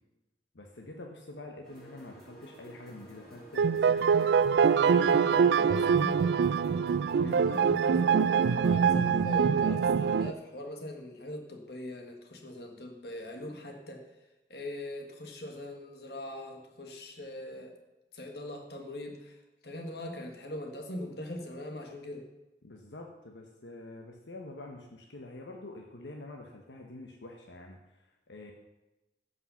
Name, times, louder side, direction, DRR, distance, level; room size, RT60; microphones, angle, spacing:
voice 1, 0.5-5.7 7.2-7.5 22.6-27.8 28.3-28.5, left 2 dB, 90° left, 2 dB, 1.1 m, -46 dB
sound 1, 1.6-8.8, equal, 5° left, 4.7 m, -52 dB
sound 2, 3.6-10.3, right 6 dB, 75° right, 0.3 m, -24 dB
voice 2, 5.6-6.3 7.3-14.1 14.5-17.7 18.1-19.4 19.6-22.3, left 1 dB, 65° left, 3 dB, 1.6 m, -41 dB
15.5 x 5.5 x 5.7 m, 1.0 s
head